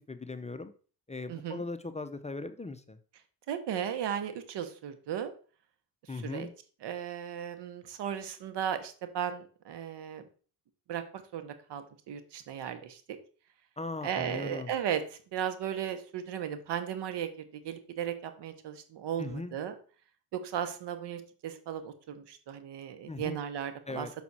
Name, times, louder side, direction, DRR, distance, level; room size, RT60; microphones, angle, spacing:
voice 1, 0.1-0.7 1.1-3.0 6.1-6.5 13.8-14.7 19.2-19.5 23.1-23.4 23.9-24.1, left 3 dB, 15° left, 10 dB, 0.6 m, -38 dB
voice 2, 1.3-1.6 3.5-5.3 6.1-6.5 6.8-10.2 10.9-13.0 14.0-19.7 20.3-24.1, right 9 dB, 70° right, 10 dB, 1.1 m, -36 dB
6.1 x 5.9 x 4.2 m, 0.40 s
cardioid pair, 85°, 42 cm